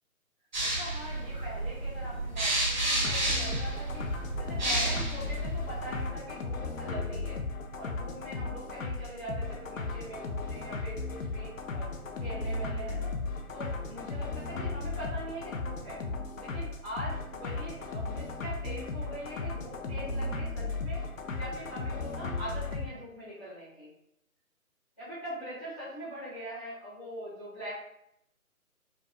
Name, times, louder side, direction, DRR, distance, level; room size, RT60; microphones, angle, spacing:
sound 1, 0.5-6.1, right 1 dB, 30° right, 1.0 m, -31 dB
voice 1, 0.6-4.0 4.4-7.4 7.7-13.1 13.5-16.0 16.4-21.0 21.3-23.9 25.0-27.8, equal, 5° right, -14 dB, 0.9 m, -42 dB
sound 2, 3.0-22.9, left 3 dB, 65° left, 0.7 m, -36 dB
5.0 x 2.2 x 3.6 m, 0.77 s
hypercardioid pair, 170°, 43 cm